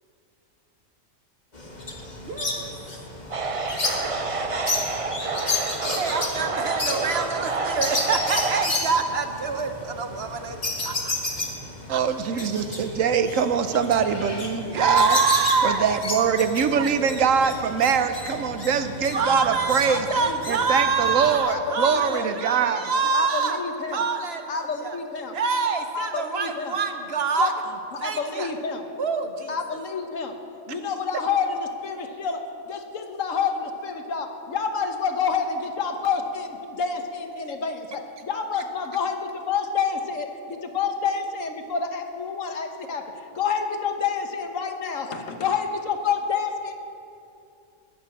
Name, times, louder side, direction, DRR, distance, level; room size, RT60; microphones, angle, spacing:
sound 1, 1.5-21.4, left 2 dB, 35° left, 1.7 m, -32 dB
voice 1, 2.2-2.7 6.0-11.1 14.6-15.8 19.1-23.6 23.9-24.9 25.3-27.5 28.0-28.5 29.0-29.5, right 4 dB, 55° right, 6 dB, 1.1 m, -26 dB
sound 2, 3.3-8.7, right 3 dB, 35° right, 0.6 m, -29 dB
voice 2, 11.9-15.2 15.6-20.1 20.5-22.8, right 6 dB, 80° right, 9 dB, 1.2 m, -23 dB
voice 3, 19.9-20.4 21.5-22.3 23.1-24.0 24.5-25.3 25.9-26.7 27.4-27.5 27.9-28.8 29.5-30.3 30.7-46.7, left 6 dB, 75° left, 5 dB, 1.5 m, -28 dB
20.5 x 6.9 x 7.2 m, 2.7 s
omnidirectional pair, 1.4 m